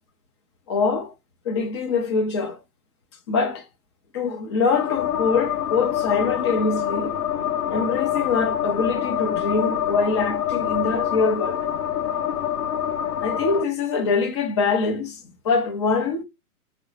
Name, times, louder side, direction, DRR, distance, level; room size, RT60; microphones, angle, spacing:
voice 1, 0.7-1.1 1.4-2.6 3.3-3.7 4.1-7.2 7.7-11.7 13.2-16.2, left 4 dB, 20° left, 0.4 m, -24 dB
sound 1, 4.7-13.6, left 10 dB, 85° left, 0.6 m, -26 dB
3.8 x 2.0 x 4.0 m
figure-of-eight pair, 115°, 45 cm